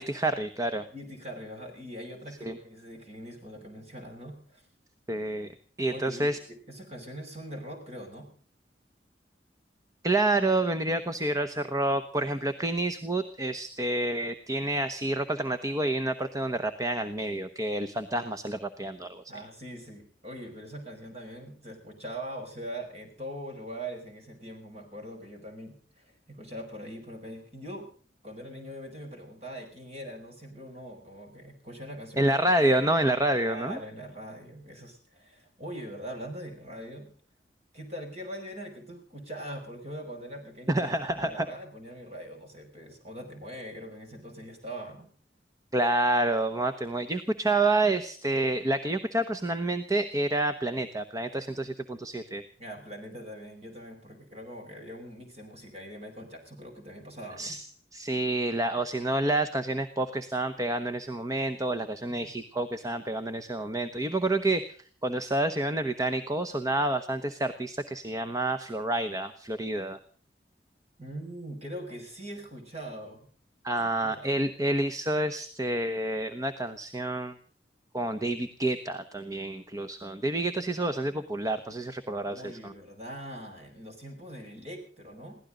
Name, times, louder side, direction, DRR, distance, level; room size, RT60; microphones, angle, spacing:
voice 1, 0.0-0.9 2.4-2.6 5.1-5.5 5.8-6.4 10.0-19.2 32.2-33.8 40.7-41.5 45.7-52.4 57.4-57.6 57.9-64.8 65.0-70.0 73.6-77.3 77.9-82.7, right 2 dB, 20° right, 8 dB, 1.0 m, -28 dB
voice 2, 0.9-4.7 5.9-8.3 19.3-27.9 28.2-32.9 33.4-37.1 37.7-45.1 52.6-57.6 62.2-62.3 71.0-73.3 73.8-74.5 82.2-85.4, equal, 35° right, 4 dB, 6.0 m, -42 dB
22.5 x 16.5 x 3.9 m, 0.43 s
head